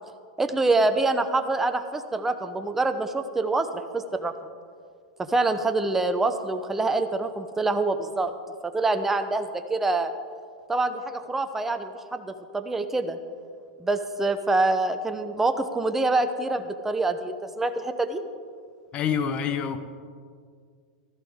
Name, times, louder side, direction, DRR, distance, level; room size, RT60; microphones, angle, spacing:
voice 1, 0.4-4.3 5.2-8.3 8.6-10.1 10.7-13.2 13.8-18.2, right 2 dB, 10° right, 8 dB, 0.8 m, -26 dB
voice 2, 18.9-19.8, left 7 dB, 35° left, 10 dB, 0.9 m, -26 dB
14.5 x 13.5 x 3.6 m, 2.1 s
supercardioid pair, 130°, 3 cm